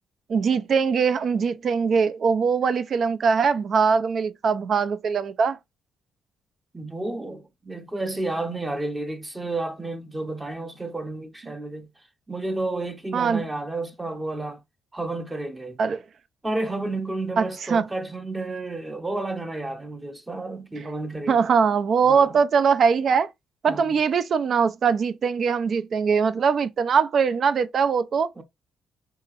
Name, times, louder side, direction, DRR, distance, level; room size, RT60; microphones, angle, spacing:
voice 1, 0.3-5.6 13.1-13.4 15.8-16.0 17.4-17.8 21.3-23.3 23.6-28.3, right 6 dB, 55° right, 0.4 m, -21 dB
voice 2, 6.7-11.9 12.3-14.6 14.9-15.8 16.4-21.5 22.0-22.4 23.7-24.0 28.4-28.5, right 2 dB, 15° right, 0.7 m, -31 dB
4.0 x 2.8 x 2.4 m
cardioid pair, 90°, 0 cm